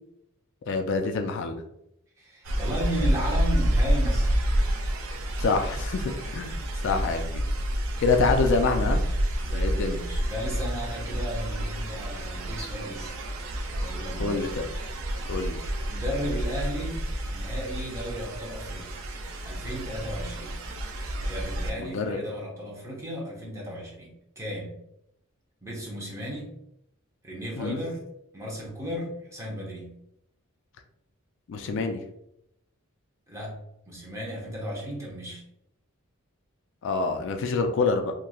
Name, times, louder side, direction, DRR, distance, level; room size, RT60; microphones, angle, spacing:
voice 1, 0.7-1.6 5.4-7.4 8.0-9.0 9.5-10.0 14.2-14.7 15.3-15.6 21.8-22.2 27.6-27.8 31.5-32.0 36.8-38.1, left 4 dB, 60° left, 5 dB, 0.3 m, -26 dB
voice 2, 2.2-4.4 7.0-7.1 9.4-13.2 13.7-14.4 15.9-17.0 17.3-19.0 19.4-20.6 21.2-24.8 25.6-26.5 27.2-28.0 28.3-30.0 33.3-35.4, equal, 15° right, -3 dB, 0.8 m, -35 dB
sound 1, 2.4-21.7, equal, 70° right, 0.5 m, -29 dB
3.0 x 2.5 x 2.3 m, 0.78 s
head